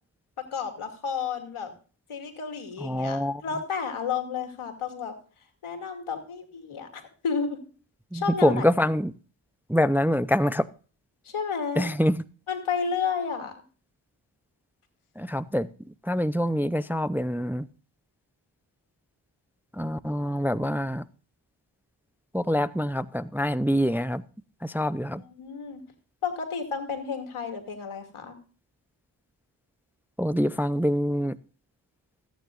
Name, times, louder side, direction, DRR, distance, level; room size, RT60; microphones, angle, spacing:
voice 1, 0.5-1.7 2.1-5.1 5.6-7.6 8.1-8.6 11.2-11.9 12.5-13.5 25.2-25.8 26.2-28.4, left 6 dB, 85° left, 2.5 m, -31 dB
voice 2, 2.8-3.4 8.1-9.1 9.7-10.7 11.8-12.2 15.2-15.7 16.0-17.6 19.7-21.0 22.3-24.2 24.6-25.2 30.2-31.4, equal, 5° right, 0.5 m, -25 dB
14.5 x 9.4 x 2.4 m
cardioid pair, 45°, 48 cm